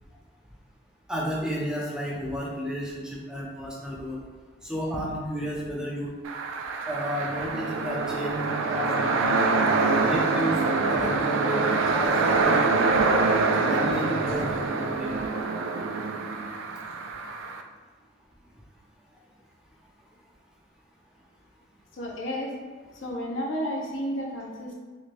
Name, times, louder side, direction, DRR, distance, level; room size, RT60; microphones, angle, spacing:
voice 1, 1.1-4.2 4.6-6.1 6.9-8.4 8.7-9.2 9.9-13.1 13.7-15.2, equal, 5° right, -4 dB, 0.5 m, -32 dB
sound 1, 6.2-17.6, right 3 dB, 90° right, 0.3 m, -25 dB
voice 2, 21.9-22.5 22.9-24.8, equal, 80° left, -1 dB, 0.7 m, -32 dB
3.2 x 2.9 x 2.5 m, 1.4 s
head